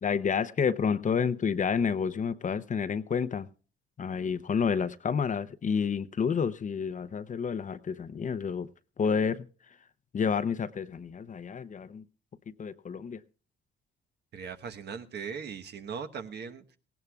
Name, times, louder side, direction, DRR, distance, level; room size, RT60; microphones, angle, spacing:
voice 1, 0.0-3.5 4.0-8.7 9.0-9.5 10.1-12.0 12.5-13.2, left 6 dB, 40° left, 12 dB, 0.7 m, -29 dB
voice 2, 14.3-16.8, right 6 dB, 55° right, 7 dB, 1.2 m, -39 dB
18.0 x 17.0 x 2.3 m, 0.37 s
cardioid pair, 90°, 20 cm